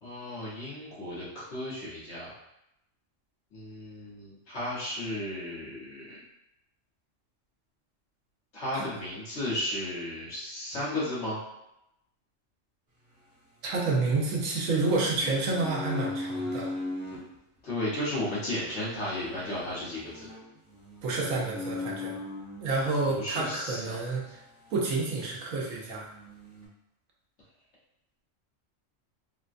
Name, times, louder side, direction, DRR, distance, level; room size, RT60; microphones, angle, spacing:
voice 1, 0.0-2.3 3.5-6.2 8.5-11.4 17.6-20.3 23.1-24.0, left 1 dB, 60° left, -8 dB, 1.5 m, -34 dB
sound 1, 13.1-14.3 14.8-17.2 17.8-22.9 23.7-24.9 25.2-25.3 25.7-26.7, left 2 dB, 50° right, 1.4 m, -40 dB
voice 2, 13.6-16.7 21.0-22.2 22.6-24.4 24.7-26.1, right 3 dB, 85° right, -3 dB, 1.1 m, -29 dB
3.6 x 2.2 x 2.5 m, 0.84 s
omnidirectional pair, 1.3 m